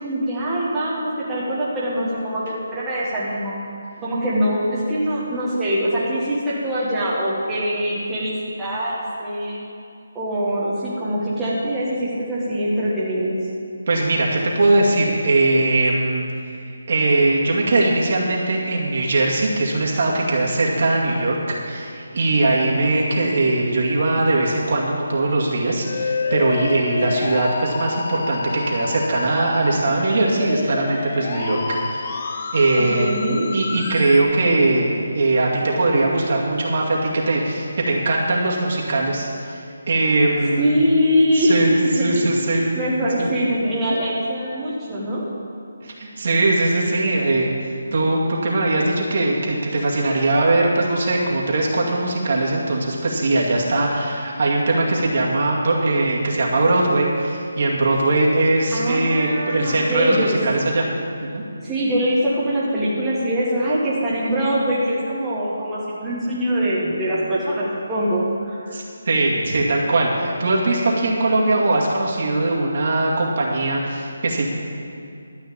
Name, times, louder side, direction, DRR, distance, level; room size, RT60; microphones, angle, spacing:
voice 1, 0.0-3.5 4.0-9.6 10.1-13.4 32.8-33.5 40.6-41.6 41.8-42.3 42.5-45.2 58.7-60.4 61.6-68.7, equal, 10° right, -9 dB, 1.7 m, -23 dB
voice 2, 13.9-16.2 16.7-31.6 31.9-33.1 33.5-34.8 35.1-40.8 41.4-42.6 43.2-43.3 45.8-60.9 61.2-61.4 68.7-74.5, right 2 dB, 50° right, -3 dB, 2.2 m, -20 dB
Musical instrument, 25.8-34.2, left 4 dB, 35° left, 0.7 m, -29 dB
12.5 x 5.7 x 8.6 m, 2.5 s
hypercardioid pair, 170°, 0 cm